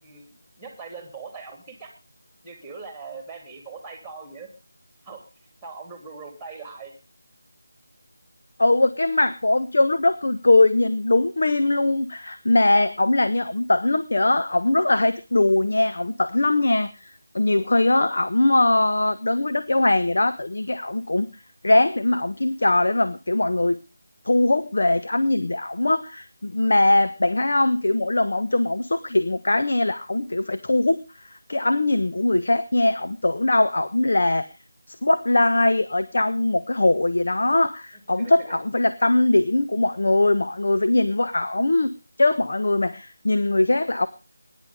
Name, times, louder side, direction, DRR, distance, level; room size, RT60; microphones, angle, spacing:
voice 1, 0.0-1.9 2.4-4.5 5.0-5.2 5.6-6.9 38.2-38.5, right 4 dB, ahead, 5 dB, 3.0 m, -40 dB
voice 2, 8.6-21.3 21.6-23.8 24.2-34.5 34.9-44.1, left 2 dB, 65° left, 10 dB, 1.2 m, -21 dB
21.0 x 10.5 x 4.9 m, 0.32 s
figure-of-eight pair, 170°, 0 cm